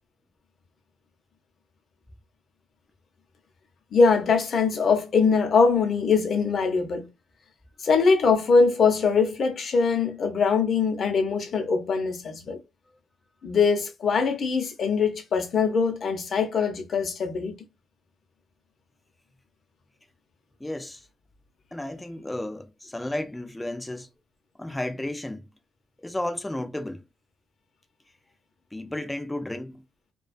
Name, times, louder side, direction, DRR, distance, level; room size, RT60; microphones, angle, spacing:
voice 1, 3.9-7.1 7.8-12.6 13.4-17.6, left 5 dB, 55° left, 0.7 m, -22 dB
voice 2, 20.6-21.1 21.7-24.1 24.6-25.5 26.0-27.0 28.7-29.8, left 1 dB, 10° left, 0.4 m, -33 dB
2.3 x 2.2 x 2.4 m
cardioid pair, 90°, 0 cm